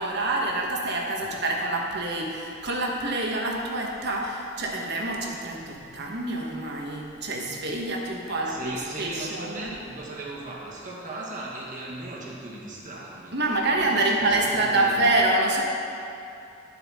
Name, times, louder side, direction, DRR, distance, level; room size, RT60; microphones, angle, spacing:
voice 1, 0.0-9.7 13.3-15.6, right 2 dB, 55° right, 0 dB, 1.2 m, -26 dB
voice 2, 8.3-13.3 13.7-15.2, right 2 dB, 40° right, -4 dB, 1.6 m, -37 dB
11.5 x 7.5 x 3.6 m, 2.7 s
head